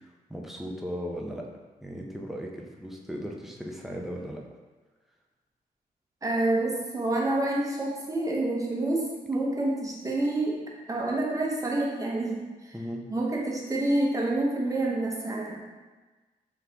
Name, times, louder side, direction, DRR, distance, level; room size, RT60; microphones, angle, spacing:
voice 1, 0.0-1.5 1.8-4.4 12.7-13.0, equal, ahead, 0 dB, 0.6 m, -37 dB
voice 2, 6.2-12.7 13.1-15.6, right 2 dB, 20° right, -3 dB, 0.9 m, -28 dB
4.0 x 3.4 x 2.9 m, 1.2 s
cardioid pair, 75°, 16 cm